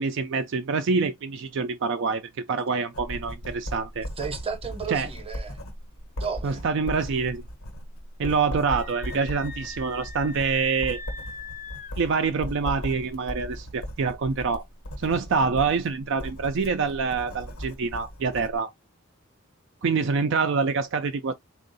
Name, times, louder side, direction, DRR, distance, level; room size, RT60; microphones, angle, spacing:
voice 1, 0.0-2.2 2.5-4.1 4.9-5.1 6.4-7.4 8.2-11.0 12.0-14.6 15.0-18.7 19.8-21.3, right 5 dB, 60° right, 0.4 m, -26 dB
Writing, 2.9-18.6, equal, 90° left, 1.2 m, -37 dB
voice 2, 4.2-5.6 6.2-6.6 19.8-20.2, right 6 dB, 30° right, 0.8 m, -33 dB
Screaming, 8.6-12.0, left 3 dB, 40° left, 0.6 m, -41 dB
3.7 x 2.4 x 3.9 m
head